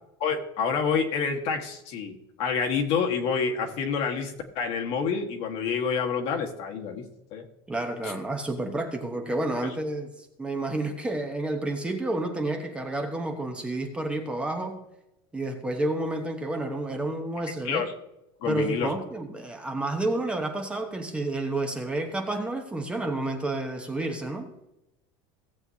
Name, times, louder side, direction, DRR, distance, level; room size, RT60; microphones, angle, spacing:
voice 1, 0.2-7.0 7.3-7.4 8.0-8.1 17.6-17.9 18.4-18.9, left 6 dB, 50° left, 3 dB, 1.5 m, -28 dB
voice 2, 7.7-10.1 10.4-14.8 15.3-17.9 18.5-24.5, right 2 dB, 10° right, 3 dB, 1.0 m, -30 dB
17.0 x 7.8 x 2.8 m, 0.89 s
cardioid pair, 160°, 13 cm